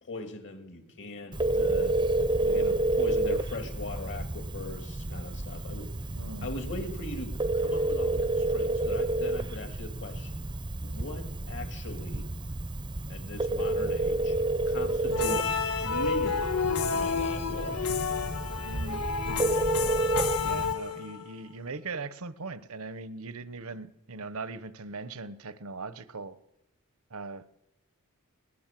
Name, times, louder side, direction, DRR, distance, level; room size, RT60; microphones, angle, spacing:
voice 1, 0.0-2.0 2.5-5.9 6.4-10.4 10.8-12.3 13.1-14.4 14.7-15.5 15.8-16.5 16.9-17.9, left 2 dB, 55° left, 6 dB, 2.9 m, -40 dB
Telephone, 1.3-20.7, right 2 dB, 20° right, 0.8 m, -30 dB
voice 2, 2.4-2.8 6.2-6.5 18.6-19.6 20.4-26.4 27.1-27.4, right 3 dB, 70° right, 14 dB, 1.1 m, -40 dB
sound 1, 15.1-21.4, left 6 dB, 85° left, 1.4 m, -30 dB
20.5 x 19.0 x 7.7 m, 0.88 s
head